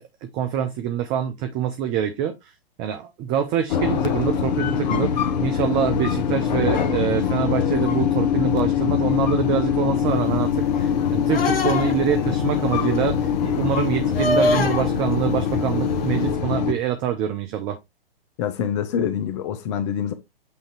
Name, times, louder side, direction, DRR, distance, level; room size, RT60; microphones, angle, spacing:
voice 1, 0.0-2.3 2.8-10.5 10.8-17.8, right 9 dB, 15° right, 0.4 m, -25 dB
sound 1, 3.7-16.7, left 8 dB, 45° left, 1.0 m, -23 dB
sound 2, 11.3-12.2 14.1-14.9 16.2-16.3, left 2 dB, 70° left, 1.3 m, -23 dB
voice 2, 18.4-20.1, left 8 dB, 30° left, 0.7 m, -25 dB
8.1 x 2.8 x 4.7 m
figure-of-eight pair, 115°, 30 cm